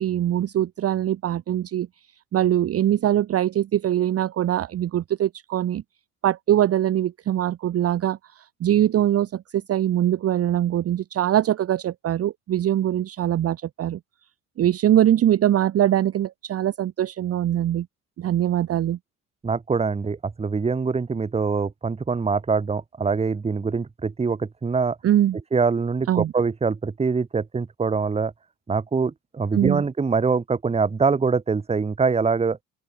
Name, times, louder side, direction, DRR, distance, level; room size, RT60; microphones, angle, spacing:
voice 1, 0.0-1.9 2.3-5.8 6.2-14.0 14.6-17.9 18.2-19.0 25.0-25.4 26.1-26.3 29.5-29.8, right 11 dB, 30° right, 1.0 m, -22 dB
voice 2, 19.4-25.0 25.5-28.3 28.7-32.6, right 5 dB, 15° right, 1.2 m, -24 dB
open air
figure-of-eight pair, 70°, 45 cm